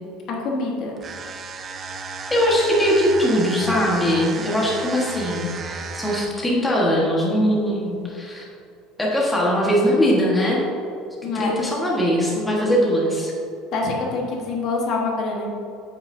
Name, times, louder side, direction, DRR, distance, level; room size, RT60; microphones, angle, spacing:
voice 1, 0.3-0.9 11.2-11.5 13.7-15.5, left 3 dB, 45° left, -1 dB, 1.3 m, -25 dB
sound 1, 1.0-6.5, right 4 dB, 30° right, 0.5 m, -33 dB
voice 2, 2.3-8.4 9.0-10.6 11.2-13.3, equal, 10° left, -4 dB, 1.3 m, -21 dB
8.8 x 8.1 x 2.6 m, 2.6 s
cardioid pair, 155°, 0 cm